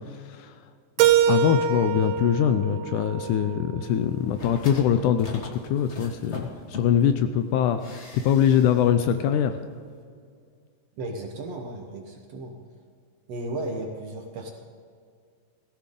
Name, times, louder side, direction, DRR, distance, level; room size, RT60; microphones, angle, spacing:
voice 1, 0.1-0.5 1.3-9.6, left 9 dB, 80° left, 9 dB, 1.9 m, -23 dB
Keyboard (musical), 1.0-3.9, right 8 dB, 85° right, 2.4 m, -24 dB
sound 1, 4.1-7.1 7.8-8.8 9.1-9.2, left 2 dB, 50° left, 0.8 m, -41 dB
voice 2, 11.0-12.6 13.3-14.5, right 2 dB, 60° right, 2 dB, 1.9 m, -34 dB
17.5 x 15.0 x 3.8 m, 2.1 s
omnidirectional pair, 4.0 m